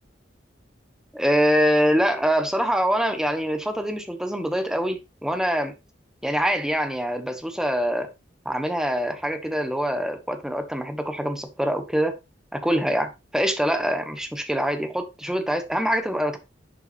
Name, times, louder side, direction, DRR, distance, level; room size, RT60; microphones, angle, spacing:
voice 1, 1.1-5.7 6.2-8.1 8.4-12.2 12.5-16.4, equal, 5° right, 1.2 m, -24 dB
11.0 x 5.8 x 2.6 m
head